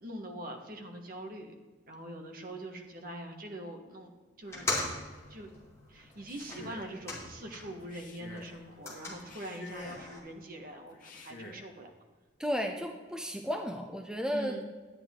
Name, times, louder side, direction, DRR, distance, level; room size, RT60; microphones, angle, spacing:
voice 1, 0.0-1.5 1.9-4.1 4.4-4.7 5.3-5.5 5.9-11.9 14.3-14.6, right 1 dB, 50° right, 3 dB, 1.4 m, -43 dB
sound 1, 4.4-7.9 8.2-10.2, left 2 dB, 15° left, 2.8 m, -40 dB
Male speech man speaking, 6.1-7.0 7.8-8.6 9.2-10.2 10.9-11.7, left 2 dB, 45° left, 1.4 m, -48 dB
voice 2, 12.4-14.6, equal, 5° right, 3 dB, 0.6 m, -33 dB
11.5 x 9.8 x 3.7 m, 1.4 s
head